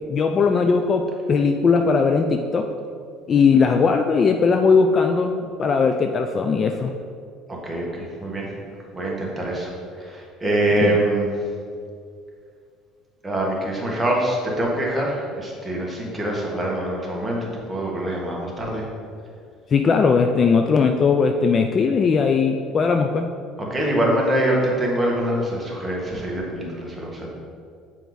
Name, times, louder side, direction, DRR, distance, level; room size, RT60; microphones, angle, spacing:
voice 1, 0.1-2.7 3.3-6.9 10.8-11.0 19.7-23.3, left 5 dB, 35° left, 5 dB, 0.3 m, -19 dB
voice 2, 7.5-8.5 8.9-9.7 10.0-11.4 13.2-18.8 23.6-27.3, right 1 dB, 10° right, -3 dB, 1.5 m, -24 dB
7.0 x 4.6 x 4.0 m, 2.3 s
cardioid pair, 115°, 0 cm